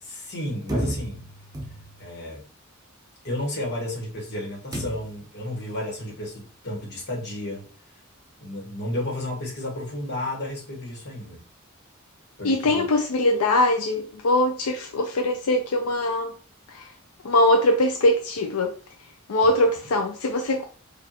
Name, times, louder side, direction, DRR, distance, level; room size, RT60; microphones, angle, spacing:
voice 1, 0.0-1.3 2.0-2.4 3.2-7.7 8.4-11.4 12.4-12.9 19.4-19.5, left 1 dB, 55° left, 1.3 m, -32 dB
sound 1, 0.7-2.2 4.7-5.3, right 1 dB, 20° right, 0.7 m, -32 dB
voice 2, 12.4-16.3 16.7-16.9 17.2-18.7 19.3-20.7, left 1 dB, 85° left, 0.5 m, -22 dB
4.9 x 2.5 x 2.9 m
head